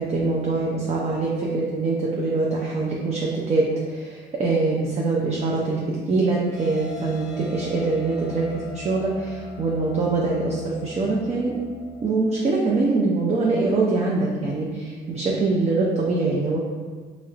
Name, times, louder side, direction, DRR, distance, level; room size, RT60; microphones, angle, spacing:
voice 1, 0.0-5.8 6.1-11.5 12.0-16.6, right 3 dB, 35° right, -3 dB, 0.4 m, -23 dB
sound 1, 6.5-12.1, left 2 dB, 5° right, 1.2 m, -40 dB
3.0 x 2.9 x 2.4 m, 1.5 s
cardioid pair, 90°, 20 cm